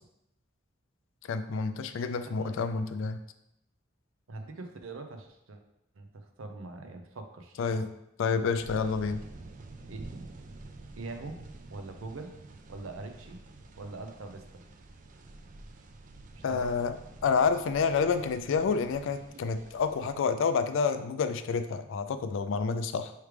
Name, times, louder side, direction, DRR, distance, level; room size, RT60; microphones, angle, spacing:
voice 1, 1.3-3.2 7.6-7.9 8.2-9.2 16.4-17.0 17.2-23.1, left 5 dB, 70° left, 10 dB, 0.3 m, -29 dB
voice 2, 2.2-2.8 4.3-5.6 6.0-7.6 9.9-10.0 11.0-11.3 11.7-12.3 12.7-13.4 13.8-14.4 16.3-16.7, right 3 dB, 85° right, 6 dB, 0.6 m, -42 dB
sound 1, 8.6-20.2, right 2 dB, 40° right, 0.4 m, -48 dB
4.8 x 3.2 x 3.2 m, 0.82 s
head